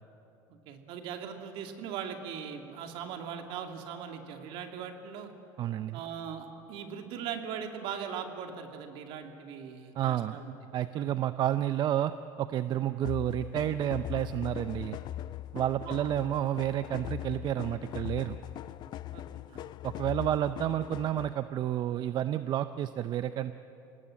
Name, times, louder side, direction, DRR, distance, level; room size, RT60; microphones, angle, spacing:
voice 1, 0.5-5.3 5.9-10.5 11.1-11.2 15.8-16.1 19.1-19.2 19.5-19.7, right 7 dB, 65° right, 4 dB, 2.5 m, -40 dB
voice 2, 5.6-6.0 9.9-10.4 10.7-12.1 12.4-15.0 15.5-18.4 19.8-23.5, right 12 dB, 45° right, 12 dB, 0.6 m, -30 dB
sound 1, 13.0-21.5, left 13 dB, 45° left, 0.5 m, -40 dB
26.5 x 19.0 x 7.7 m, 2.9 s
supercardioid pair, 100°, 10 cm